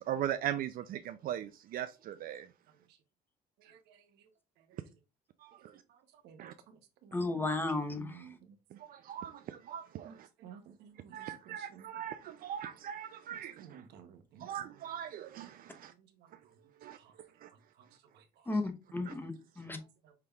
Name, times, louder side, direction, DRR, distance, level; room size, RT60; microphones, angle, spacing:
voice 1, 0.0-2.5 5.4-5.5 6.4-6.5 8.9-10.1 11.1-13.8 14.4-15.9 16.8-17.0 17.4-17.5 19.1-19.2, right 10 dB, 60° right, 0.4 m, -39 dB
voice 2, 3.6-4.3 4.6-4.8 5.9-7.5 7.9-8.6 10.0-11.9 13.6-14.5 16.9-17.1 17.8-17.9 18.1-18.6 19.7-20.1, right 8 dB, 80° right, 0.8 m, -55 dB
voice 3, 7.1-8.2 18.5-18.6 18.9-19.8, left 2 dB, 10° left, 0.8 m, -33 dB
5.8 x 3.3 x 2.3 m
cardioid pair, 110°, 17 cm